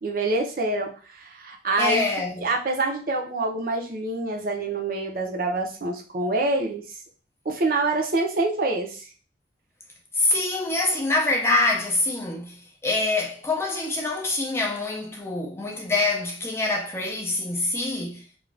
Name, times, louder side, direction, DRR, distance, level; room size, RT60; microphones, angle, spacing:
voice 1, 0.0-2.1 2.4-6.8 7.5-9.1, right 2 dB, 55° right, 0.6 m, -26 dB
voice 2, 1.8-2.5 10.1-18.2, left 2 dB, 15° left, 0.5 m, -25 dB
2.5 x 2.3 x 3.2 m
head